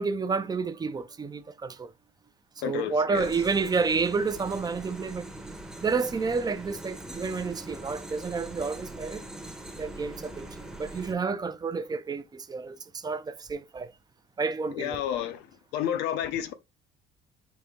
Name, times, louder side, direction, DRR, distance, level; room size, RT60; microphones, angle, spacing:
voice 1, 0.0-1.9 2.6-5.3 5.8-9.2 9.8-10.5 10.8-13.9 14.4-15.0, right 4 dB, 25° right, 0.5 m, -30 dB
voice 2, 2.6-3.3 14.7-15.5 15.7-16.5, left 10 dB, 90° left, 0.7 m, -30 dB
sound 1, 3.1-11.1, right 1 dB, 5° right, 0.8 m, -42 dB
4.2 x 2.8 x 3.5 m
cardioid pair, 110°, 17 cm